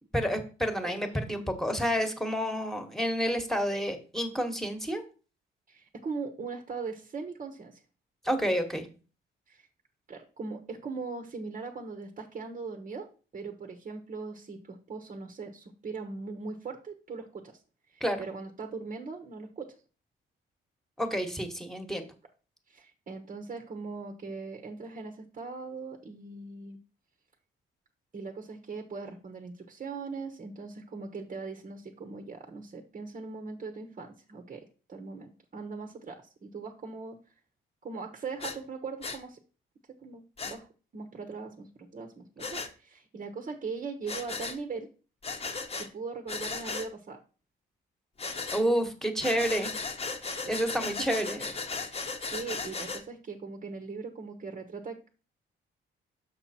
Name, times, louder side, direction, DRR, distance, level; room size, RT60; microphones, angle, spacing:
voice 1, 0.1-5.0 8.2-8.9 18.0-18.2 21.0-22.0 48.5-49.7 50.5-51.6, equal, ahead, 6 dB, 1.4 m, -29 dB
voice 2, 5.7-7.8 9.5-9.7 10.1-13.1 13.3-17.6 17.9-19.7 22.7-26.8 28.1-37.2 37.8-39.4 40.0-40.7 40.9-44.9 45.8-47.2 50.4-51.0 51.9-55.1, right 4 dB, 40° right, 4 dB, 1.1 m, -40 dB
Breathing, 38.4-38.6 39.0-39.2 40.4-40.6 42.4-42.7 44.1-44.6 45.2-45.9 46.3-46.9 48.2-48.6 49.2-53.0, left 4 dB, 30° left, 1.0 m, -36 dB
6.5 x 6.1 x 4.3 m, 0.35 s
cardioid pair, 90°, 20 cm